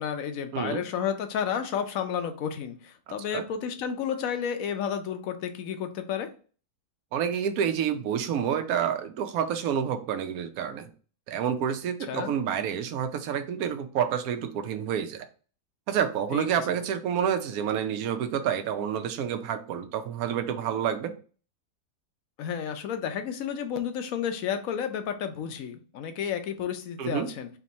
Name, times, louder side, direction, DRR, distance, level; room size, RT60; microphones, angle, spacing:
voice 1, 0.0-6.3 12.1-12.3 16.3-16.5 22.4-27.5, left 8 dB, 70° left, 7 dB, 1.0 m, -31 dB
voice 2, 3.1-3.4 7.1-10.9 11.3-15.2 15.9-21.1 27.0-27.3, right 8 dB, 70° right, 8 dB, 1.0 m, -29 dB
3.5 x 2.9 x 4.0 m, 0.39 s
omnidirectional pair, 1.7 m